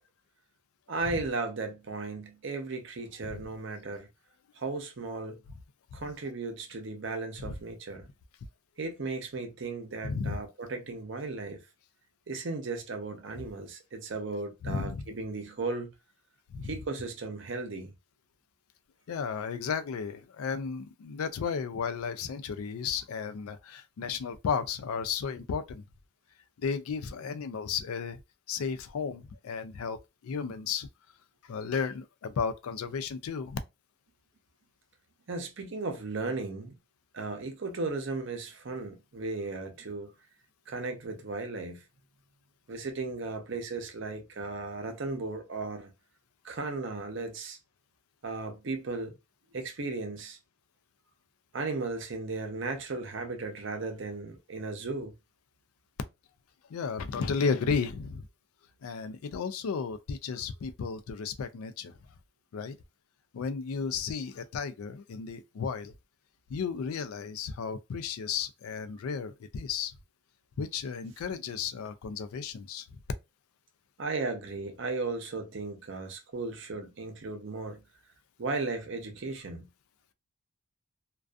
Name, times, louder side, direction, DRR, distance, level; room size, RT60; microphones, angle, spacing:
voice 1, 0.9-4.1 4.6-5.4 5.9-8.1 8.8-11.6 12.3-15.9 16.6-17.9 35.3-36.7 37.1-40.1 40.7-41.8 42.7-45.9 46.4-47.6 48.2-49.1 49.5-50.4 51.5-55.1 74.0-77.8 78.4-79.7, right 3 dB, 60° right, 0.6 m, -36 dB
voice 2, 10.0-10.4 14.6-15.1 16.5-16.7 19.1-25.8 26.6-28.2 28.5-30.0 30.2-30.9 31.4-33.6 56.7-58.3 58.8-62.0 62.5-62.7 63.3-65.9 66.5-70.0 70.6-73.0, left 6 dB, 90° left, 0.4 m, -33 dB
2.4 x 2.3 x 2.3 m
head